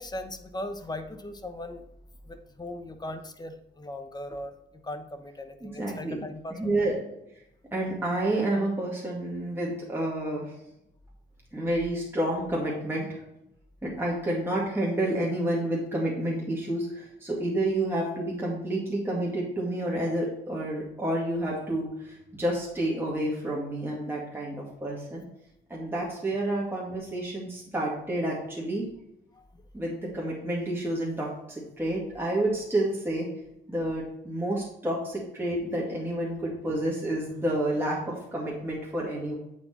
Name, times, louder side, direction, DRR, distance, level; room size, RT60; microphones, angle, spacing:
voice 1, 0.0-1.8 2.2-4.5 4.8-6.7 29.3-29.4, left 1 dB, 20° left, 8 dB, 0.9 m, -38 dB
voice 2, 5.6-6.2 6.5-6.9 7.7-10.4 11.5-13.2 13.8-25.2 25.7-28.8 29.7-33.3 33.7-39.4, right 1 dB, 10° right, -4 dB, 2.0 m, -29 dB
8.5 x 4.6 x 4.3 m, 0.83 s
cardioid pair, 90°, 20 cm